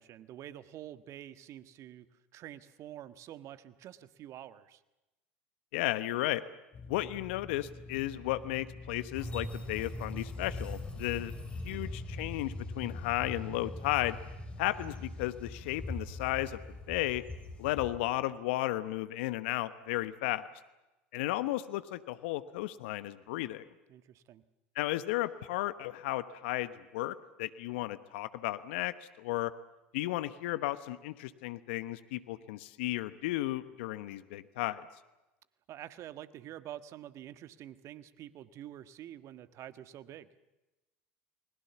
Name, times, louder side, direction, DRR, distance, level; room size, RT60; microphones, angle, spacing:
voice 1, 0.0-4.8 11.7-11.9 23.9-24.4 35.7-40.3, right 12 dB, 50° right, 12 dB, 1.5 m, -47 dB
voice 2, 5.7-6.4 6.9-11.3 11.6-14.2 14.6-16.6 16.9-17.2 17.6-20.5 21.1-23.6 24.7-29.5 29.9-34.8, left 16 dB, 70° left, 14 dB, 1.1 m, -34 dB
sound 1, 6.7-12.4, left 2 dB, 35° left, 4.2 m, -47 dB
sound 2, 9.1-18.2, left 2 dB, 20° left, 6.5 m, -41 dB
30.0 x 21.0 x 7.1 m, 1.0 s
hypercardioid pair, 75°, 6 cm